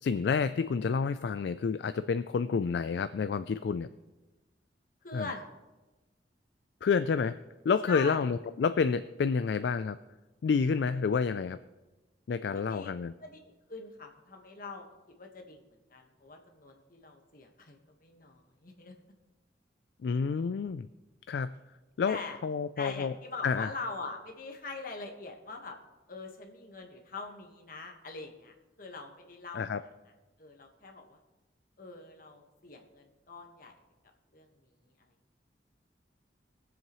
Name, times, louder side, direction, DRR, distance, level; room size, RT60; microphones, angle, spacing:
voice 1, 0.0-3.9 5.1-5.3 6.8-7.4 7.6-10.0 10.4-11.6 12.3-13.1 20.0-20.9 21.3-21.5 22.0-22.2 22.4-23.1 23.4-23.7 29.5-29.8, left 5 dB, 65° left, 12 dB, 0.3 m, -29 dB
voice 2, 5.0-5.6 7.9-8.3 12.5-12.9 13.2-13.4 13.7-14.9 15.2-15.6 15.9-18.9 22.1-22.4 22.8-25.8 26.1-29.6 30.4-31.2 31.8-33.7 34.3-34.5 34.8-34.9, left 3 dB, 50° left, 3 dB, 1.4 m, -43 dB
21.0 x 7.7 x 3.1 m, 1.1 s
head